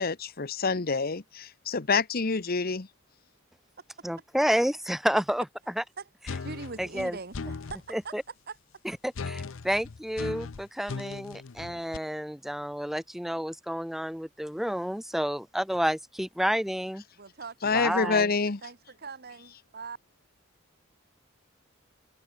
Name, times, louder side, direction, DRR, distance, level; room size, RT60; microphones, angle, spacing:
voice 1, 0.0-2.9 17.6-18.6, left 4 dB, 45° left, 1.0 m, -27 dB
voice 2, 4.0-5.4 5.8-5.9 6.8-7.2 7.9-8.2 9.0-17.0 17.7-18.3, equal, ahead, 0.6 m, -30 dB
sound 1, 6.3-7.8 9.1-12.0, left 4 dB, 70° left, 0.6 m, -38 dB
voice 3, 6.4-8.1 8.5-8.6 17.2-18.2 18.6-20.0, right 4 dB, 50° right, 1.3 m, -41 dB
head